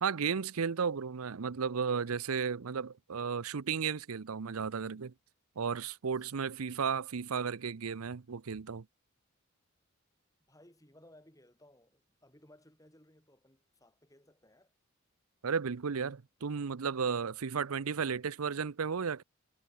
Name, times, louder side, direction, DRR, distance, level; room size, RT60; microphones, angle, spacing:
voice 1, 0.0-5.1 5.6-8.8 15.4-19.2, right 6 dB, 80° right, 0.6 m, -34 dB
voice 2, 6.2-6.6 10.5-14.8, left 1 dB, 15° left, 7.1 m, -61 dB
head